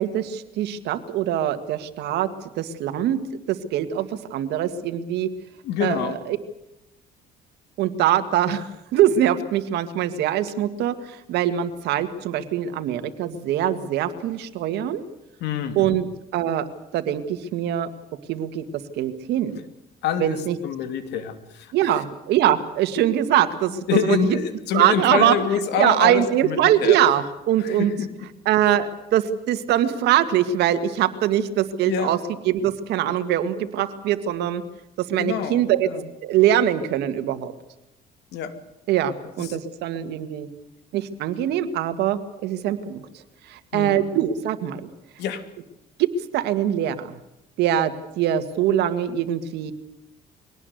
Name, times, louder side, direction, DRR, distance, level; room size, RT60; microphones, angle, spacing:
voice 1, 0.0-5.3 5.8-6.4 7.8-15.0 15.8-16.1 16.3-17.9 18.3-18.6 18.9-19.6 20.2-20.6 21.7-24.4 24.7-25.4 25.7-27.9 28.5-32.2 32.4-34.6 35.0-35.9 36.2-37.5 38.9-40.5 40.9-43.1 43.4-44.9 46.0-47.2 47.6-49.7, right 11 dB, 80° right, 10 dB, 2.1 m, -23 dB
voice 2, 5.6-6.2 15.4-16.0 20.0-20.4 20.6-21.7 23.9-27.0 27.6-28.1 31.9-32.1 35.2-36.0 38.3-38.5 43.7-44.1 45.2-45.4, left 8 dB, 85° left, 9 dB, 2.9 m, -26 dB
23.0 x 18.5 x 8.1 m, 0.91 s
cardioid pair, 110°, 17 cm